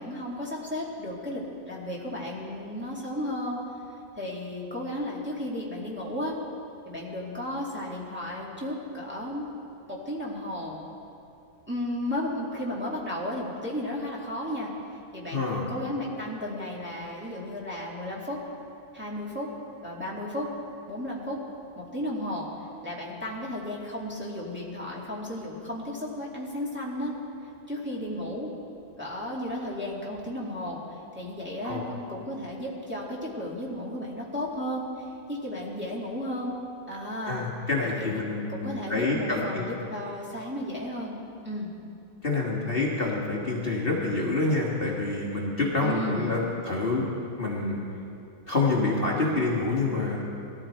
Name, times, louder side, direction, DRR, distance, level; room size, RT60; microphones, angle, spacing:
voice 1, 0.0-3.6 4.2-6.3 6.8-9.5 9.9-10.8 11.7-14.7 15.1-18.4 18.9-19.5 19.8-20.5 20.9-21.4 21.8-22.5 22.8-27.1 27.7-28.5 29.0-34.8 35.3-36.5 36.9-37.5 37.8-38.2 38.5-41.2 41.4-41.7 45.8-46.5, left 1 dB, 5° right, -5 dB, 2.2 m, -34 dB
voice 2, 15.3-15.7 31.6-31.8 37.3-39.6 42.2-47.1 47.4-47.8 48.5-50.3, left 3 dB, 35° left, -4 dB, 1.8 m, -27 dB
20.0 x 13.5 x 4.4 m, 2.6 s
omnidirectional pair, 1.7 m